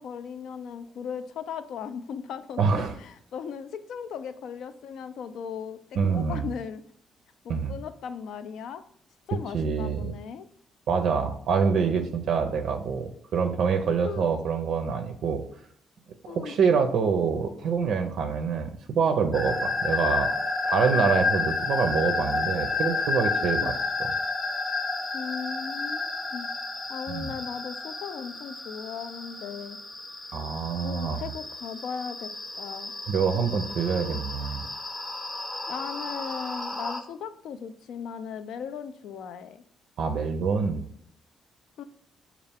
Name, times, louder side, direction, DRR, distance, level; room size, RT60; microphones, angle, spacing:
voice 1, 0.0-6.8 7.4-8.8 9.3-10.5 14.0-14.3 16.2-16.6 23.6-23.7 25.1-26.5 26.9-29.8 30.8-32.3 32.6-32.9 35.7-39.6 41.8-41.9, left 7 dB, 75° left, 11 dB, 0.3 m, -37 dB
voice 2, 2.6-2.9 5.9-6.5 7.5-7.7 9.5-10.1 10.9-15.4 16.2-20.3 20.6-23.7 27.1-27.3 30.3-31.2 33.1-34.6 40.0-40.8, right 6 dB, 70° right, 7 dB, 0.4 m, -26 dB
sound 1, 19.3-37.0, left 3 dB, 15° left, 0.7 m, -31 dB
5.5 x 2.3 x 3.4 m, 0.66 s
cardioid pair, 90°, 0 cm